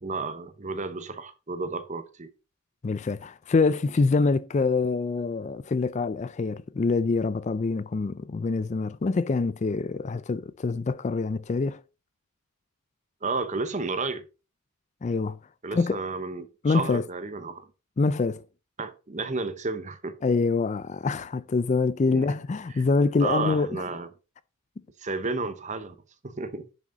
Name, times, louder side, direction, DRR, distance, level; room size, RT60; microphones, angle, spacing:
voice 1, 0.0-2.3 13.2-14.2 15.6-17.7 18.8-20.2 22.1-22.4 22.7-22.8 23.2-24.1 25.0-26.0 26.2-26.7, right 3 dB, 35° right, 0.9 m, -32 dB
voice 2, 2.8-11.8 15.0-15.4 15.7-16.0 16.6-17.0 18.0-18.4 20.2-23.8, left 4 dB, 30° left, 0.3 m, -25 dB
10.5 x 6.1 x 3.8 m
head